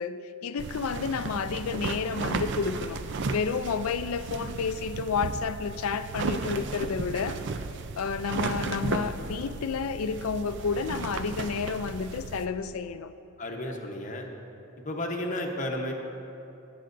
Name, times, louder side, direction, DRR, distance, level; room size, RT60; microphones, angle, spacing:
voice 1, 0.0-3.0 3.3-7.4 8.0-13.1, left 5 dB, 80° left, 12 dB, 0.4 m, -30 dB
sound 1, 0.6-12.5, right 4 dB, 55° right, 0.4 m, -34 dB
voice 2, 13.4-14.3 14.8-15.9, left 1 dB, 35° left, 2 dB, 0.9 m, -32 dB
17.5 x 7.7 x 2.6 m, 2.7 s
head